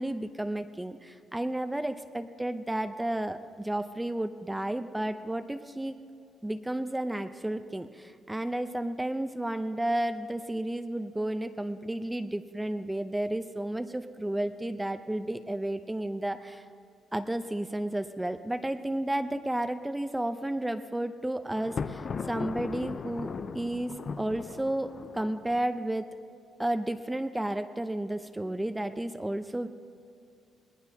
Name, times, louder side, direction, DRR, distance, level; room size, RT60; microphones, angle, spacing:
voice 1, 0.0-6.0 6.4-16.6 17.1-26.1 26.6-29.7, right 1 dB, 10° right, 9 dB, 0.6 m, -32 dB
Thunder, 21.6-25.7, left 5 dB, 45° left, 0.4 m, -37 dB
20.0 x 19.0 x 2.8 m, 2.4 s
cardioid pair, 90°, 0 cm